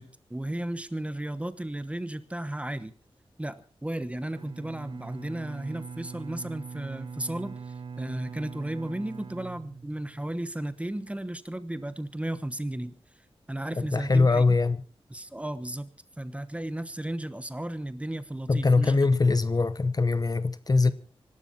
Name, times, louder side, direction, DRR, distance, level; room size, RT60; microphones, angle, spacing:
voice 1, 0.0-2.9 3.4-13.0 13.5-14.4 15.1-19.1, right 1 dB, 10° right, 1.1 m, -34 dB
Bowed string instrument, 4.3-10.3, right 5 dB, 55° right, 0.8 m, -42 dB
voice 2, 13.8-14.8 18.5-20.9, left 3 dB, 40° left, 0.9 m, -22 dB
25.0 x 12.5 x 4.4 m
wide cardioid pair, 125°, 10 cm